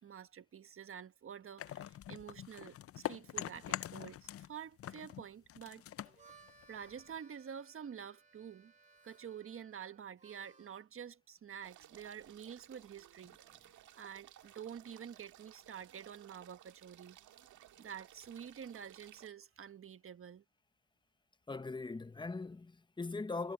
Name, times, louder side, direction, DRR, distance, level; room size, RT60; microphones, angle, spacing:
voice 1, 0.0-5.9 6.7-8.7 9.0-13.3 13.9-17.2 17.8-20.4, right 8 dB, 45° right, 1.4 m, -48 dB
sound 1, 1.6-4.5 4.8-7.2, left 12 dB, 50° left, 0.5 m, -44 dB
Harmonica, 5.9-10.8, right 4 dB, 25° right, 2.0 m, -63 dB
sound 2, 11.6-19.3, right 12 dB, 75° right, 1.7 m, -59 dB
voice 2, 21.5-23.5, left 3 dB, 15° left, 0.9 m, -40 dB
cardioid pair, 90°, 30 cm